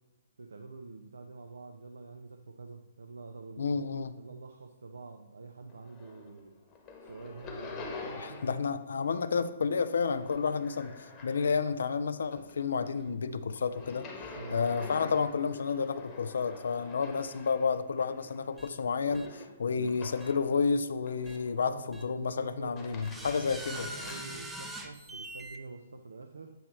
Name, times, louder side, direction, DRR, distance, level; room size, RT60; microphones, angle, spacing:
voice 1, 0.4-6.6 7.0-8.8 14.4-14.6 19.7-20.0 21.6-26.5, right 4 dB, 70° right, 5 dB, 0.4 m, -47 dB
voice 2, 3.6-4.1 8.2-14.1 14.5-23.9, left 5 dB, 65° left, 12 dB, 0.3 m, -31 dB
sound 1, 5.7-6.4 6.7-8.7 9.0-11.8 12.2-20.6 21.0-21.7 22.5-24.3, left 4 dB, 25° left, 1.0 m, -47 dB
sound 2, 18.6-18.7 19.1-19.3 20.2-20.3 21.3-21.4 21.9-22.0 23.0-25.6, right 1 dB, 5° right, 0.5 m, -43 dB
7.8 x 3.0 x 4.3 m, 1.1 s
figure-of-eight pair, 125°, 0 cm